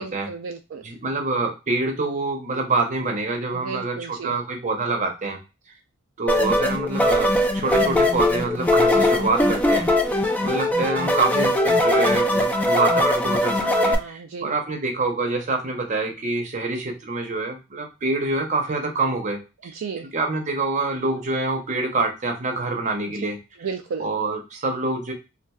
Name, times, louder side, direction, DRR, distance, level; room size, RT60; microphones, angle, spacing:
voice 1, 0.0-0.8 3.5-4.3 13.6-14.5 19.6-20.1 23.6-24.1, right 5 dB, 70° right, 5 dB, 0.4 m, -34 dB
voice 2, 0.8-5.4 6.2-9.9 10.4-19.7 20.1-23.4 24.0-25.1, right 3 dB, 35° right, 4 dB, 0.7 m, -26 dB
sound 1, 6.3-14.0, left 1 dB, 5° left, 0.3 m, -20 dB
4.1 x 2.4 x 2.3 m, 0.28 s
head